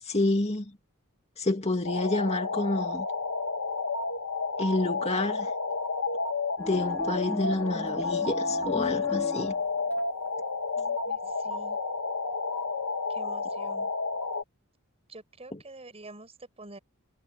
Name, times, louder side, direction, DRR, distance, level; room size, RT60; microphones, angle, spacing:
voice 1, 0.0-0.7 1.4-3.1 4.6-5.5 6.6-9.5 15.5-15.6, left 2 dB, 30° left, 2.4 m, -29 dB
sound 1, 1.8-14.4, left 4 dB, 80° left, 2.4 m, -31 dB
sound 2, 6.6-10.0, equal, 10° left, 2.4 m, -39 dB
voice 2, 10.8-11.8 13.1-13.9 15.1-16.8, right 2 dB, 30° right, 6.0 m, -47 dB
head